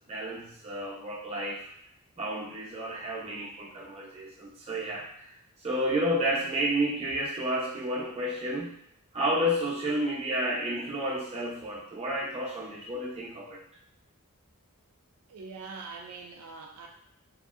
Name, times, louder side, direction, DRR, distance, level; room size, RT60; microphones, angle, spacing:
voice 1, 0.1-1.7 2.2-5.3 5.6-8.8 9.1-13.6, equal, 30° right, -4 dB, 0.7 m, -31 dB
voice 2, 15.3-16.9, right 4 dB, 75° right, 1 dB, 0.4 m, -43 dB
2.9 x 2.6 x 2.4 m, 0.74 s
head